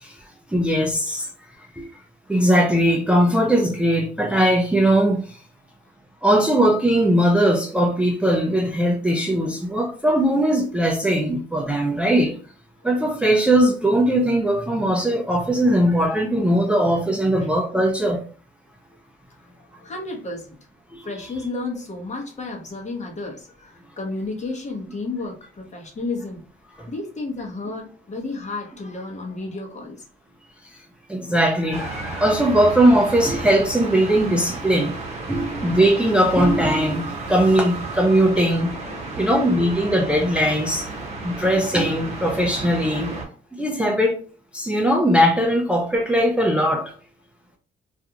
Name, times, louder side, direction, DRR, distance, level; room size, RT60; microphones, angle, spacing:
voice 1, 0.5-1.3 1.8-1.9 2.3-5.4 6.2-12.4 12.8-18.2 20.9-21.0 31.1-34.9 35.3-38.7 39.2-40.9 41.2-43.1 43.6-44.2 44.5-46.9, right 1 dB, 5° right, 0.4 m, -19 dB
voice 2, 19.8-20.6 21.0-26.4 26.8-30.0 35.3-35.7 39.0-39.2 39.5-39.7, left 3 dB, 35° left, 1.0 m, -32 dB
sound 1, 31.7-43.2, right 3 dB, 35° right, 1.0 m, -33 dB
2.5 x 2.3 x 2.8 m
cardioid pair, 90°, 20 cm